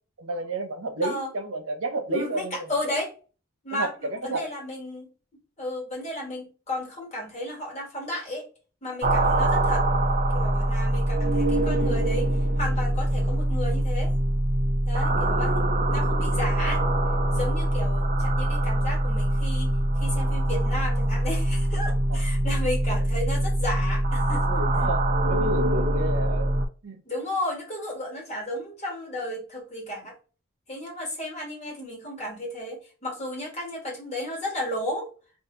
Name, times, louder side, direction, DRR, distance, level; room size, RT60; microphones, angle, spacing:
voice 1, 0.2-2.6 3.7-4.4 15.1-15.3 22.1-22.2 24.5-25.0 25.3-26.5 26.8-27.0, right 2 dB, 85° right, 0.8 m, -31 dB
voice 2, 2.1-3.1 3.6-5.1 5.6-8.4 8.8-9.9 10.3-12.3 12.6-14.1 14.8-15.6 15.9-16.8 17.3-24.5 27.0-30.1 30.7-35.1, left 1 dB, 35° left, 1.4 m, -33 dB
sound 1, 9.0-26.6, right 1 dB, 35° right, 0.4 m, -24 dB
2.7 x 2.5 x 3.7 m
head